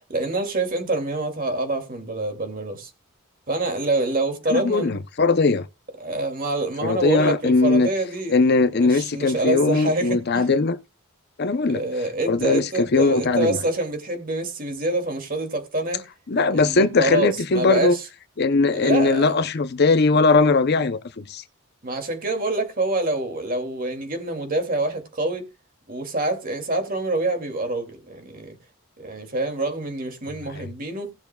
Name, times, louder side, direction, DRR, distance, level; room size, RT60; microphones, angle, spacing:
voice 1, 0.0-2.9 3.5-4.9 6.0-8.4 8.8-10.6 11.7-16.0 16.5-18.0 18.7-19.5 21.8-25.5 25.9-28.6 29.0-31.1, right 2 dB, 40° right, 2.4 m, -26 dB
voice 2, 4.5-5.7 6.8-7.9 8.3-10.8 11.4-11.8 12.3-13.6 16.3-18.0 18.4-21.4 30.4-30.6, left 3 dB, 45° left, 0.6 m, -20 dB
18.0 x 6.9 x 2.3 m
head